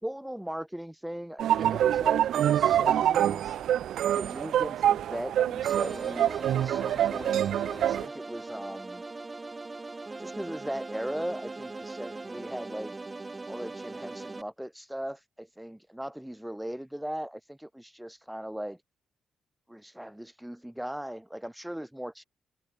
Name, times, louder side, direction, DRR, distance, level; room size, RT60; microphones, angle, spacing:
voice 1, 0.0-3.6 4.0-9.0 10.2-12.9 13.5-18.8 19.7-22.2, equal, 5° right, 1.2 m, -39 dB
sound 1, 1.4-8.1, right 11 dB, 80° right, 0.5 m, -26 dB
sound 2, 5.7-14.4, right 3 dB, 25° right, 5.1 m, -40 dB
cardioid pair, 85°, 0 cm